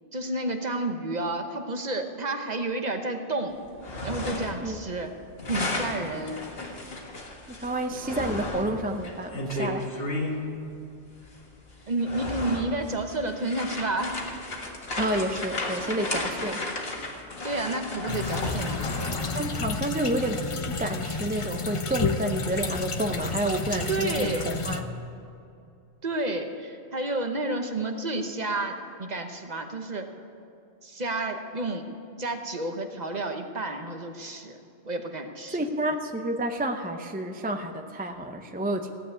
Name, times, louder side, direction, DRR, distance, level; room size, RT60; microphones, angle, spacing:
voice 1, 0.1-3.6 4.0-5.1 5.5-6.5 11.9-14.2 17.4-18.9 23.9-24.5 26.0-30.1 30.8-31.9 32.2-34.6 34.8-35.6, right 2 dB, 40° right, 5 dB, 1.1 m, -30 dB
sound 1, 3.7-4.7 5.0-10.4 11.2-11.4 11.9-19.6, left 2 dB, 55° left, 1.9 m, -34 dB
voice 2, 7.5-10.0 15.0-16.6 19.3-24.8 35.5-38.9, right 1 dB, 10° right, 5 dB, 0.5 m, -30 dB
sound 2, 18.1-24.8, left 4 dB, 35° left, 0.6 m, -31 dB
16.0 x 8.4 x 9.6 m, 2.6 s
omnidirectional pair, 1.2 m